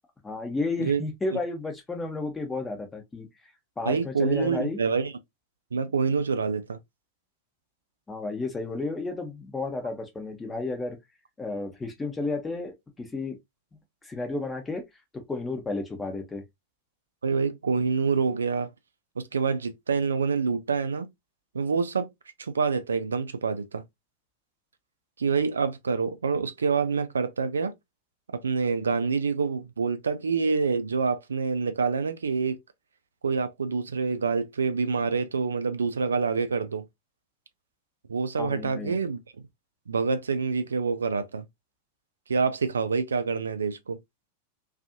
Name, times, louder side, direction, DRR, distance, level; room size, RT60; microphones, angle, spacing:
voice 1, 0.2-3.3 3.8-4.8 8.1-11.0 11.4-13.4 14.0-14.8 15.1-16.4 38.4-38.9, left 3 dB, 15° left, 0.8 m, -32 dB
voice 2, 3.9-5.1 5.7-6.8 17.2-18.7 19.2-21.1 21.5-22.1 22.4-23.8 25.2-27.7 28.4-32.6 33.2-36.9 38.1-39.2 39.9-41.5 42.3-44.0, right 5 dB, 70° right, 0.4 m, -26 dB
2.5 x 2.4 x 2.5 m
figure-of-eight pair, 90°, 0 cm